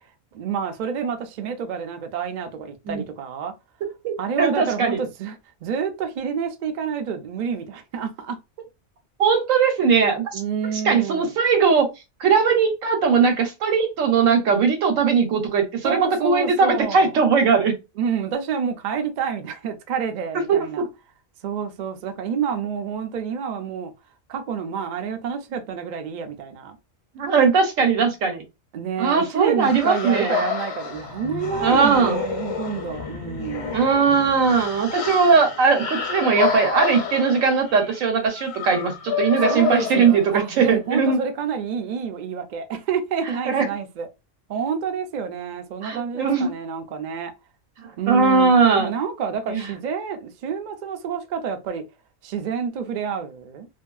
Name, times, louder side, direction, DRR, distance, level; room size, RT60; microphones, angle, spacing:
voice 1, 0.3-3.5 4.2-5.4 5.6-8.4 10.3-11.3 15.8-17.1 18.0-20.9 21.4-23.9 24.3-26.8 28.7-33.8 39.4-44.1 44.5-47.3 48.0-51.8 52.2-53.7, right 7 dB, 65° right, 0.4 m, -28 dB
voice 2, 4.0-5.0 9.2-10.4 10.8-11.9 12.2-17.8 20.5-20.9 27.2-28.4 29.0-30.4 31.6-32.2 33.7-41.2 43.5-43.6 45.8-46.5 48.1-48.9 49.5-49.7, right 5 dB, 85° right, 1.1 m, -19 dB
Ghost Monster Scream, 29.6-40.7, left 6 dB, 65° left, 0.9 m, -29 dB
2.6 x 2.5 x 2.3 m
omnidirectional pair, 1.3 m